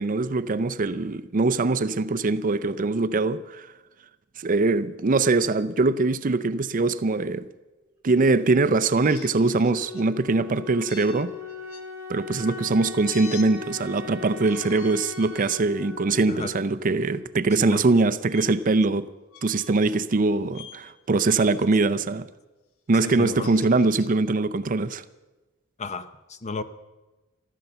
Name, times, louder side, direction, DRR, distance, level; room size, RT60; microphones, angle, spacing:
voice 1, 0.0-3.7 4.4-7.5 8.0-11.3 12.1-19.0 19.4-22.2 22.9-25.0, right 3 dB, 40° right, 0.5 m, -22 dB
sound 1, 8.9-10.1 10.9-11.8 13.0-13.5 14.3-15.7 16.3-16.5 18.3-18.5 19.3-19.9 20.5-20.8 21.2-21.7 23.2-24.1, left 7 dB, 85° left, 1.4 m, -45 dB
Wind instrument woodwind instrument, 9.0-17.7, left 5 dB, 15° right, 2.5 m, -39 dB
voice 2, 22.9-23.5 25.8-26.6, left 3 dB, 35° left, 0.7 m, -33 dB
14.5 x 13.5 x 6.8 m
head